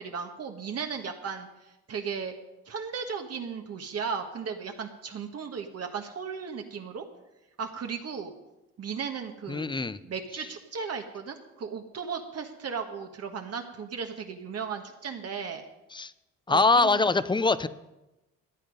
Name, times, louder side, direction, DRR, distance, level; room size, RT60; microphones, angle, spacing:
voice 1, 0.0-2.3 2.7-7.0 7.6-8.3 8.8-9.7 10.0-15.6 16.5-17.0, right 6 dB, 55° right, 4 dB, 1.4 m, -36 dB
voice 2, 9.5-10.0 15.9-16.1 16.5-17.7, left 3 dB, 15° left, 15 dB, 0.5 m, -23 dB
14.5 x 9.4 x 5.3 m, 0.97 s
cardioid pair, 90°, 30 cm